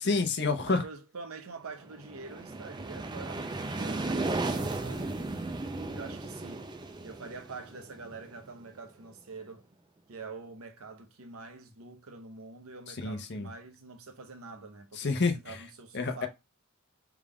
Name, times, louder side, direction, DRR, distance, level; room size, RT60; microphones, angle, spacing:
voice 1, 0.0-0.8 13.0-13.5 15.0-15.6 15.9-16.3, left 3 dB, 50° left, 0.7 m, -28 dB
voice 2, 0.7-5.1 5.9-6.7 7.0-9.7 10.1-16.3, right 4 dB, 80° right, 0.8 m, -46 dB
sound 1, 1.8-8.6, right 2 dB, 20° right, 0.4 m, -35 dB
3.5 x 2.3 x 3.6 m
head